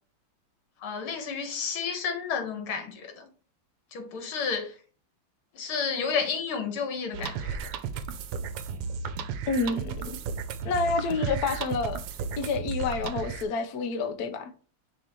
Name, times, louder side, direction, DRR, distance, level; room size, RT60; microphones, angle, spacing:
voice 1, 0.8-3.3 3.9-4.7 5.6-7.5, left 6 dB, 75° left, 2.2 m, -31 dB
sound 1, 7.1-13.4, right 6 dB, 90° right, 1.7 m, -34 dB
voice 2, 9.5-10.0 10.6-12.0 12.4-14.5, left 4 dB, 60° left, 1.1 m, -28 dB
10.5 x 3.8 x 3.0 m
omnidirectional pair, 2.4 m